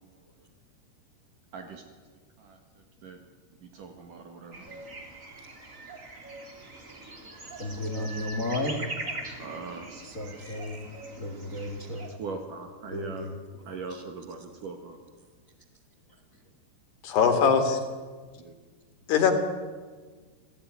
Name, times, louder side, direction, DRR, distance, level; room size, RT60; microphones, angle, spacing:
voice 1, 3.6-4.7 9.4-10.0 12.1-13.3 13.7-15.0 18.4-18.6, right 4 dB, 55° right, 5 dB, 3.0 m, -40 dB
sound 1, 4.5-12.1, right 2 dB, 20° right, 2.6 m, -42 dB
voice 2, 7.5-8.8 10.0-10.9 11.2-12.1 12.9-13.3 13.9-14.0, left 1 dB, 35° left, 6 dB, 1.2 m, -33 dB
voice 3, 17.0-17.8 19.1-19.4, left 6 dB, 70° left, 6 dB, 4.2 m, -21 dB
27.5 x 16.0 x 9.7 m, 1.5 s
omnidirectional pair, 4.9 m